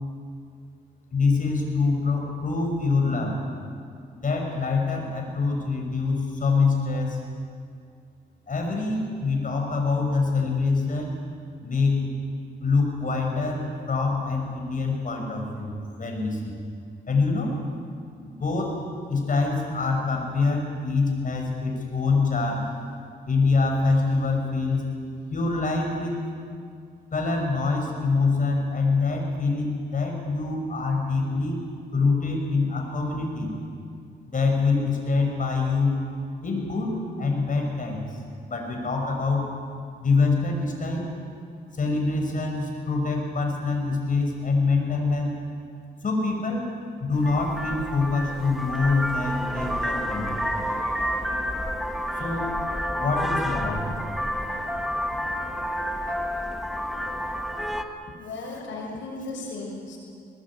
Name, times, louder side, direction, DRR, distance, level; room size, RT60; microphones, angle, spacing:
voice 1, 1.1-3.4 4.1-7.2 8.5-11.1 11.6-12.1 12.6-16.6 17.1-17.6 18.2-18.8 19.1-22.7 23.3-24.9 25.3-26.2 27.1-31.6 31.9-33.5 34.3-35.9 36.4-38.2 38.5-39.5 40.0-41.1 41.7-45.4 46.0-46.7 47.0-50.4 52.1-52.5 53.0-54.2 56.0-56.2, left 3 dB, 45° left, 2 dB, 6.3 m, -25 dB
Vehicle horn car horn honking, 47.2-57.8, equal, ahead, 1.7 m, -29 dB
voice 2, 58.2-60.0, left 2 dB, 90° left, -1 dB, 6.8 m, -35 dB
21.5 x 19.5 x 8.7 m, 2.3 s
cardioid pair, 80°, 19 cm